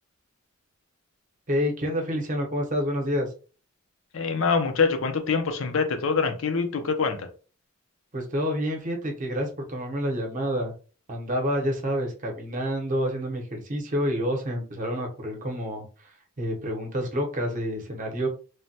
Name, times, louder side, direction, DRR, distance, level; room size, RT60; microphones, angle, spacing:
voice 1, 1.5-3.3 8.1-10.7 11.1-18.3, equal, 40° right, 0.8 m, -28 dB
voice 2, 4.1-7.3, left 5 dB, 75° left, 0.6 m, -25 dB
3.2 x 2.1 x 2.7 m
head